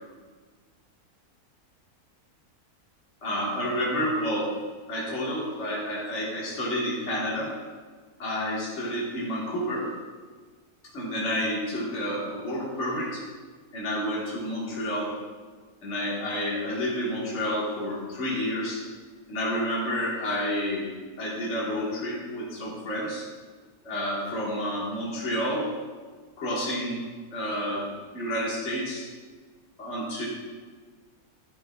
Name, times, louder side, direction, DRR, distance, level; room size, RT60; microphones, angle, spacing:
voice 1, 3.2-4.5 4.9-7.5 8.2-9.9 10.9-13.2 13.7-15.1 15.8-18.8 19.3-20.9 21.2-23.2 23.8-25.7 26.4-27.0 27.3-27.9 28.1-29.1 29.8-30.2, equal, 50° left, -6 dB, 1.8 m, -29 dB
11.0 x 7.6 x 2.3 m, 1.5 s
omnidirectional pair, 1.6 m